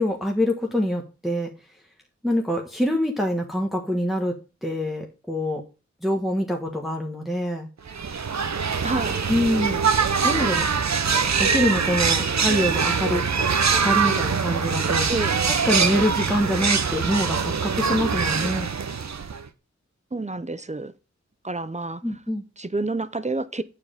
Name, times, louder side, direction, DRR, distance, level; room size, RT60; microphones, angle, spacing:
voice 1, 0.0-1.5 2.2-5.6 6.0-7.7 9.3-9.8 10.2-10.7 11.4-13.2 13.7-15.1 15.5-18.7 22.0-22.4, equal, ahead, 1.3 m, -25 dB
sound 1, 7.9-19.5, right 5 dB, 65° right, 0.8 m, -23 dB
voice 2, 8.8-9.2 15.1-15.4 20.1-20.9 21.4-22.0 22.6-23.6, right 2 dB, 25° right, 0.7 m, -28 dB
8.4 x 4.9 x 5.0 m
wide cardioid pair, 40°, 29 cm